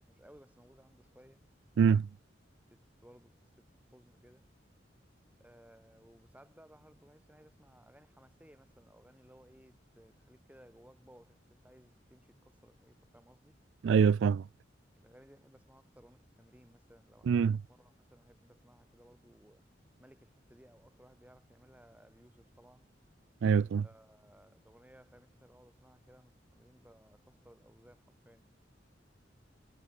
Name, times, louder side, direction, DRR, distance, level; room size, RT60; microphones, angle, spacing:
voice 1, 0.0-1.4 2.6-4.5 5.4-13.6 15.0-19.6 20.0-22.9 23.5-28.5, equal, 10° right, 3.5 m, -61 dB
voice 2, 13.8-14.4 17.3-17.6 23.4-23.8, right 6 dB, 90° right, 0.3 m, -24 dB
head